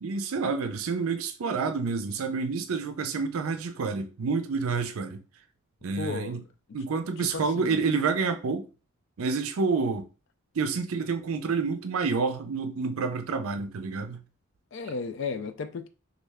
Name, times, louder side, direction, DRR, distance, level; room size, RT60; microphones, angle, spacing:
voice 1, 0.0-5.2 5.8-6.4 6.7-8.7 9.2-10.1 10.5-14.2, right 4 dB, 75° right, 0.5 m, -28 dB
voice 2, 6.0-6.4 7.2-7.8 14.7-15.9, left 4 dB, 55° left, 0.3 m, -34 dB
3.2 x 2.3 x 3.4 m
head